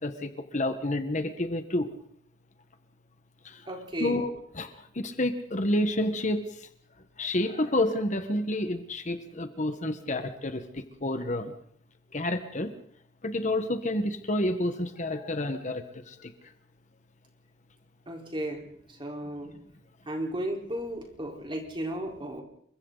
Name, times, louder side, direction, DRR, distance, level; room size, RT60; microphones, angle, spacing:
voice 1, 0.0-1.9 3.4-3.6 4.0-4.7 4.9-6.6 7.2-11.5 12.1-12.7 13.2-16.3, left 1 dB, 40° left, 8 dB, 1.4 m, -29 dB
voice 2, 3.7-4.2 18.1-18.6 19.0-19.5 20.1-22.4, right 1 dB, 30° right, 1 dB, 4.4 m, -34 dB
28.0 x 23.5 x 4.1 m, 0.64 s
head